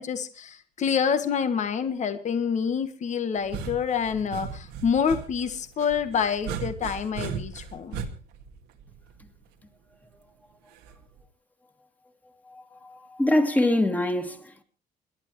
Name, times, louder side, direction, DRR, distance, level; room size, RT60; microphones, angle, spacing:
voice 1, 0.0-8.0, left 7 dB, 45° left, 1.5 m, -27 dB
sound 1, 3.4-9.4 10.8-11.2, right 6 dB, 90° right, 2.0 m, -37 dB
voice 2, 12.5-14.6, left 1 dB, 10° left, 2.2 m, -25 dB
28.0 x 11.0 x 3.1 m
cardioid pair, 110°, 17 cm